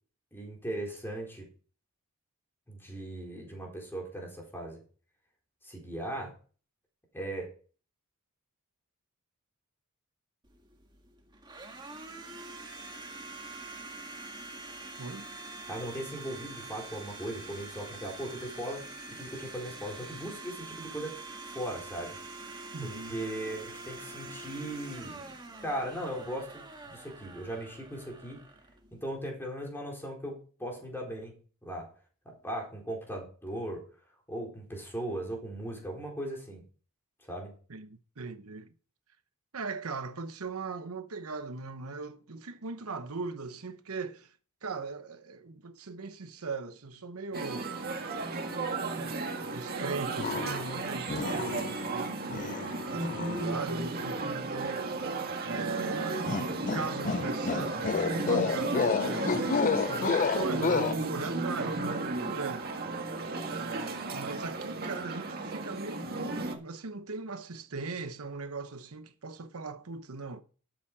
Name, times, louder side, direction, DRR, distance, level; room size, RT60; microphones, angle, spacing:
voice 1, 0.3-1.5 2.7-4.8 5.6-6.3 7.1-7.5 15.7-21.1 21.4-22.2 22.8-25.2 25.6-28.5 28.9-31.3 31.6-31.9 32.2-33.9 34.3-36.6 37.3-37.5, right 1 dB, 10° left, 4.2 m, -38 dB
Domestic sounds home sounds, 10.4-29.3, right 2 dB, 20° right, 1.8 m, -45 dB
voice 2, 22.7-23.2 37.7-38.7 39.5-44.3 44.6-47.7 49.0-55.1 55.4-56.4 56.7-62.7 63.4-70.4, right 4 dB, 80° right, 1.0 m, -39 dB
sound 1, 47.3-66.5, right 3 dB, 45° right, 1.8 m, -34 dB
sound 2, 50.2-50.8 51.1-51.9 52.3-53.5 56.3-60.9, left 5 dB, 35° left, 0.5 m, -30 dB
13.0 x 7.2 x 4.9 m
head